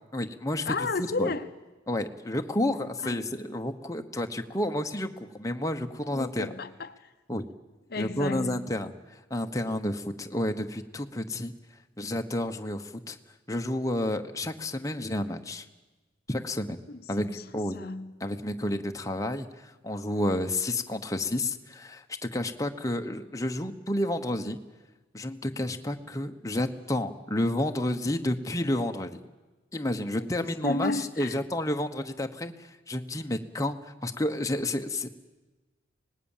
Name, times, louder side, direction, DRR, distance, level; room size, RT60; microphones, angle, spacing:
voice 1, 0.1-0.7 1.2-1.3 1.9-6.5 7.3-7.4 8.0-11.5 12.0-13.2 13.5-15.6 16.3-16.8 17.1-17.8 18.2-24.6 25.1-29.2 29.7-35.1, left 1 dB, 15° left, 1.1 m, -30 dB
voice 2, 0.6-1.5 3.0-3.2 6.0-7.1 7.9-8.8 16.9-18.1 30.2-31.4, left 3 dB, 50° left, 0.9 m, -33 dB
25.5 x 19.5 x 7.4 m
head